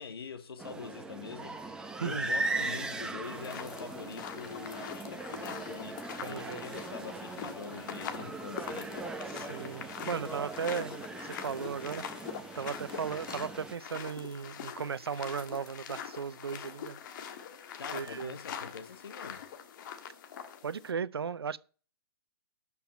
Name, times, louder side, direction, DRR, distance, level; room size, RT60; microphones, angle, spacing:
voice 1, 0.0-1.6 2.0-9.1 17.8-19.4, left 5 dB, 70° left, 1.6 m, -44 dB
sound 1, 0.6-13.8, right 3 dB, 5° right, 1.0 m, -39 dB
voice 2, 2.0-2.4 6.2-6.6 9.3-11.0 11.3-17.0 17.9-18.3 20.6-21.6, right 6 dB, 75° right, 0.7 m, -36 dB
sound 2, 3.2-20.9, left 8 dB, 50° left, 1.6 m, -43 dB
12.5 x 5.9 x 5.4 m
figure-of-eight pair, 120°, 13 cm